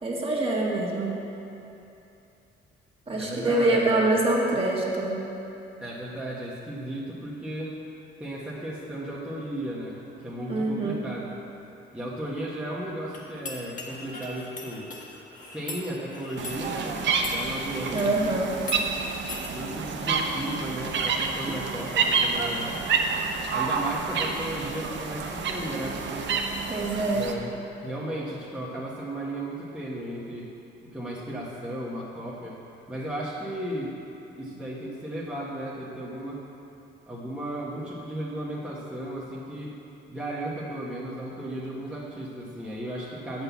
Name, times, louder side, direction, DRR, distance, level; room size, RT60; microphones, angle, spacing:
voice 1, 0.0-1.2 3.1-5.2 10.5-11.0 17.9-18.5 26.7-27.3, right 2 dB, 30° right, -4 dB, 1.9 m, -25 dB
voice 2, 3.2-4.0 5.8-7.8 8.2-11.2 11.9-14.9 15.4-18.5 19.5-22.8 23.5-26.3 27.1-30.5 30.8-32.6 32.9-34.0 34.4-36.4 37.1-39.8 40.1-43.4, right 1 dB, 5° right, -7 dB, 1.4 m, -35 dB
sound 1, 13.1-18.2 18.6-18.8 19.3-19.5, left 3 dB, 40° left, 1.6 m, -40 dB
sound 2, 16.4-27.3, right 5 dB, 65° right, 0.8 m, -29 dB
7.8 x 6.1 x 7.1 m, 2.9 s
cardioid pair, 90°, 20 cm